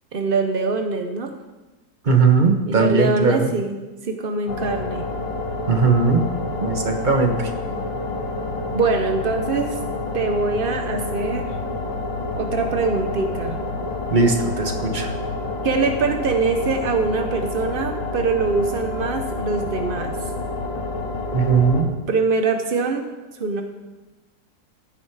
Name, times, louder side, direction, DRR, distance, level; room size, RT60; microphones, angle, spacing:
voice 1, 0.1-1.3 2.7-3.8 4.0-5.0 8.7-9.8 10.1-11.6 12.4-13.6 15.6-20.2 22.1-23.1 23.3-23.6, right 4 dB, 55° right, 5 dB, 0.6 m, -23 dB
voice 2, 2.0-3.5 5.7-6.3 6.6-7.5 14.1-15.1 21.3-21.9, right 4 dB, 30° right, 4 dB, 1.2 m, -18 dB
sound 1, 4.5-21.8, left 2 dB, 90° left, 2.6 m, -28 dB
15.5 x 9.6 x 4.7 m, 1.2 s
omnidirectional pair, 2.0 m